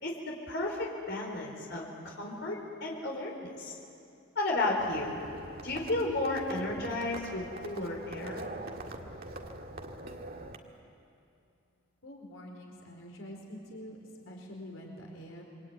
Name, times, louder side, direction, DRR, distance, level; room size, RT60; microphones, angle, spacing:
voice 1, 0.0-3.8 4.4-5.2 5.6-8.4, left 2 dB, 60° left, -1 dB, 4.4 m, -33 dB
Livestock farm animals working animals, 4.8-10.6, right 2 dB, 45° right, 2.0 m, -43 dB
voice 2, 12.0-14.0 14.2-15.4, equal, 75° left, 0 dB, 4.4 m, -46 dB
27.0 x 24.0 x 9.2 m, 2.6 s
head